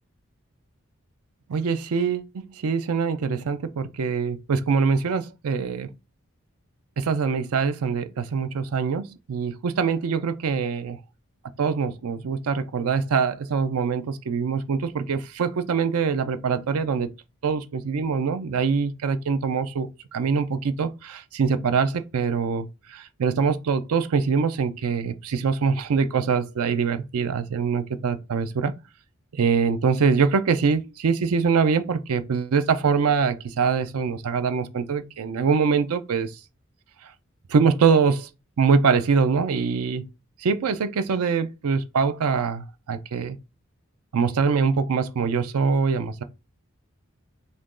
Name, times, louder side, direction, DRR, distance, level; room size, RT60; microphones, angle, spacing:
voice 1, 1.5-5.9 7.0-11.0 11.6-17.1 17.4-28.7 29.3-36.4 37.5-38.3 38.6-40.1 40.4-43.4 44.1-46.2, right 5 dB, 90° right, 0.4 m, -24 dB
2.9 x 2.6 x 3.6 m
head